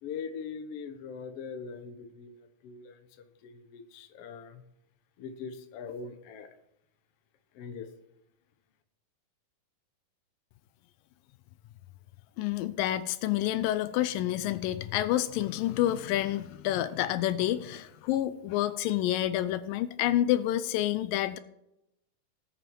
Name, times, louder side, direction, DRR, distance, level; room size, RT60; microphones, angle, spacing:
voice 1, 0.0-3.1 3.4-4.6 5.2-6.5 7.5-7.9, left 5 dB, 60° left, 7 dB, 1.6 m, -41 dB
voice 2, 12.4-21.4, left 13 dB, 80° left, 13 dB, 2.2 m, -28 dB
19.0 x 6.9 x 4.6 m, 0.85 s
omnidirectional pair, 4.0 m